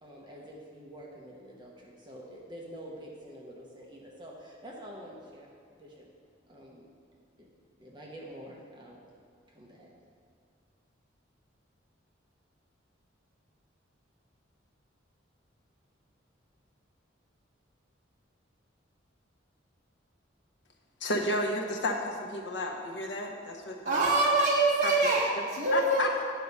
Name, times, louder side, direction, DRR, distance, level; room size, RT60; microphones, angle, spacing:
voice 1, 0.0-5.5 5.8-6.1 6.5-6.8 7.4-7.5 7.8-9.0 9.5-9.9, equal, 25° right, -3 dB, 0.9 m, -47 dB
voice 2, 21.0-24.1 24.8-24.9 25.7-26.3, left 1 dB, 65° left, 1 dB, 1.0 m, -32 dB
voice 3, 23.8-26.1, right 2 dB, 40° right, -5 dB, 1.3 m, -25 dB
9.1 x 4.7 x 5.5 m, 2.2 s
head